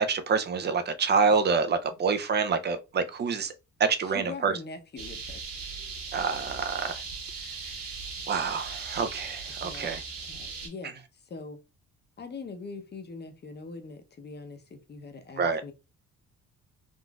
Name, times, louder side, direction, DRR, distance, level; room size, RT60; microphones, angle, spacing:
voice 1, 0.1-3.5 3.8-4.5 6.1-7.0 8.3-10.0 15.4-15.6, right 5 dB, 35° right, 0.5 m, -27 dB
voice 2, 4.0-5.4 9.6-9.9 10.3-11.6 12.2-15.7, left 4 dB, 35° left, 0.7 m, -42 dB
sound 1, 5.0-10.7, right 4 dB, 50° right, 1.7 m, -38 dB
3.7 x 2.5 x 2.3 m
cardioid pair, 90°, 30 cm